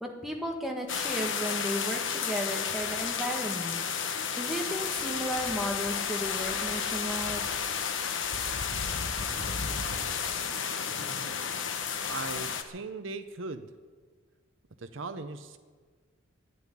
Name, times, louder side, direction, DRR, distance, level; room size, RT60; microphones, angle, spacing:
voice 1, 0.0-3.8 4.4-7.5, equal, ahead, 0 dB, 1.7 m, -34 dB
sound 1, 0.9-12.6, left 6 dB, 60° left, 1.1 m, -32 dB
voice 2, 11.0-11.3 12.1-13.7 14.8-15.6, right 3 dB, 60° right, 9 dB, 0.7 m, -39 dB
12.5 x 10.0 x 9.9 m, 1.5 s
head